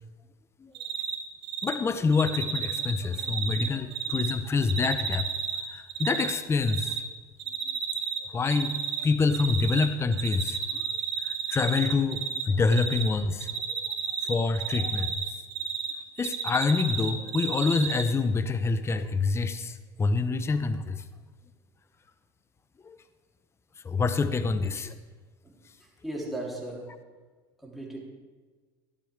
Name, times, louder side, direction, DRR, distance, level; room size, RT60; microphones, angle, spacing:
Cricket, 0.7-1.2 1.4-1.7 2.1-4.3 4.6-6.3 6.6-7.0 7.4-8.2 8.5-9.9 10.1-12.4 12.7-13.1 13.4-15.9 16.2-18.0, right 7 dB, 45° right, 2.5 m, -31 dB
voice 1, 1.6-5.3 5.7-7.0 8.3-10.8 11.2-13.8 14.2-15.2 16.2-21.0 22.8-23.0 23.8-24.9, left 4 dB, 20° left, 12 dB, 0.7 m, -27 dB
voice 2, 25.8-26.9 27.6-28.0, right 1 dB, ahead, -4 dB, 3.6 m, -37 dB
12.0 x 11.5 x 3.6 m, 1.4 s
supercardioid pair, 90°, 12 cm